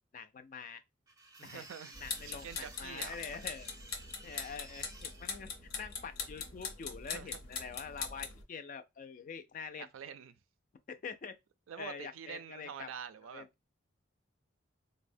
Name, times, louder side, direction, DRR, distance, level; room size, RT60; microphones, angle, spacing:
voice 1, 0.1-0.8 1.4-1.7 2.0-3.7 4.2-9.9 10.9-11.4 11.8-12.9 13.3-13.5, left 6 dB, 40° left, 0.3 m, -45 dB
sound 1, 1.1-5.4, right 2 dB, 20° right, 0.5 m, -54 dB
voice 2, 1.4-1.9 2.2-3.2 7.1-7.3 9.8-10.4 11.7-13.5, right 7 dB, 85° right, 0.4 m, -46 dB
sound 2, 1.9-8.4, left 5 dB, 85° left, 0.8 m, -42 dB
3.9 x 2.0 x 2.6 m
head